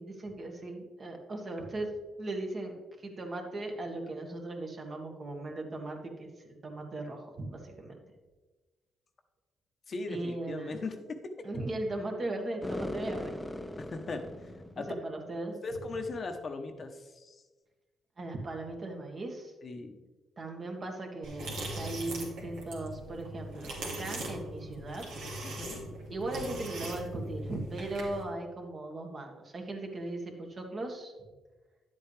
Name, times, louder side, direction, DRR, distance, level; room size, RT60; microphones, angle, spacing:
voice 1, 0.0-1.9 2.2-8.0 10.1-10.8 11.4-13.4 14.8-15.6 18.2-19.5 20.4-25.1 26.1-31.1, right 2 dB, 40° right, 2 dB, 1.7 m, -38 dB
voice 2, 9.9-11.5 13.8-14.3 14.8-14.9 15.6-17.4 19.6-20.0 25.4-25.9, left 3 dB, 45° left, 6 dB, 0.9 m, -39 dB
sound 1, 12.6-15.0, left 1 dB, 10° left, 0.5 m, -39 dB
sound 2, 21.2-28.2, right 1 dB, 85° right, 2.5 m, -40 dB
10.5 x 8.0 x 3.4 m, 1.3 s
cardioid pair, 90°, 0 cm